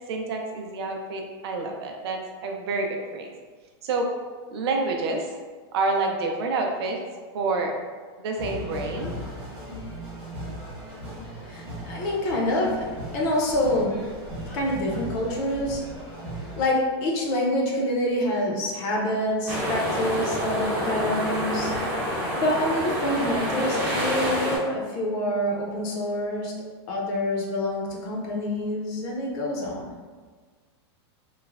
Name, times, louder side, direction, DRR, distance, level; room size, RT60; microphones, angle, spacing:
voice 1, 0.1-3.3 3.8-4.1 4.5-5.3 5.7-7.0 7.3-7.7 8.2-9.1, right 3 dB, 65° right, 2 dB, 0.5 m, -28 dB
sound 1, 8.4-16.6, right 1 dB, 10° right, 0.6 m, -37 dB
voice 2, 11.4-12.9 13.1-14.0 14.5-15.8 16.6-21.7 22.3-26.5 26.9-29.9, left 1 dB, 35° left, -2 dB, 0.5 m, -26 dB
sound 2, 19.5-24.6, equal, 35° right, 0.9 m, -27 dB
3.1 x 2.0 x 2.4 m, 1.5 s
supercardioid pair, 160°, 14 cm